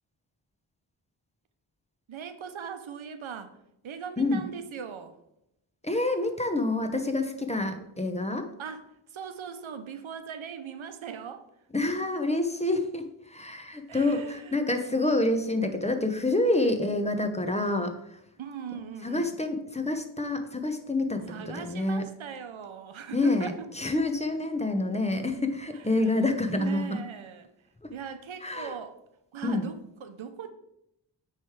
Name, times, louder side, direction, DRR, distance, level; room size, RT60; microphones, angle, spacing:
voice 1, 2.1-3.6 3.8-5.2 8.6-11.5 13.9-14.7 18.4-19.3 21.3-23.7 25.7-26.2 26.5-27.5 27.9-29.0 29.3-30.5, right 7 dB, 90° right, 0.7 m, -40 dB
voice 2, 5.8-8.5 11.7-18.2 19.0-21.3 21.5-22.0 23.1-27.0 27.8-27.9 28.4-28.7 29.4-29.7, left 2 dB, 15° left, 0.8 m, -27 dB
9.1 x 3.3 x 4.7 m
wide cardioid pair, 75°, 46 cm